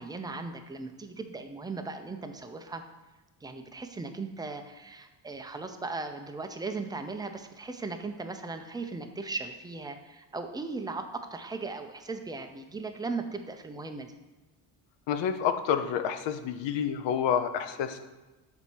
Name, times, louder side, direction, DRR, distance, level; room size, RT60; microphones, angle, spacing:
voice 1, 0.0-2.8 3.4-14.2, right 3 dB, 10° right, 6 dB, 0.5 m, -37 dB
voice 2, 15.1-18.0, left 8 dB, 70° left, 9 dB, 0.7 m, -29 dB
6.7 x 4.2 x 4.5 m, 1.1 s
cardioid pair, 110°, 46 cm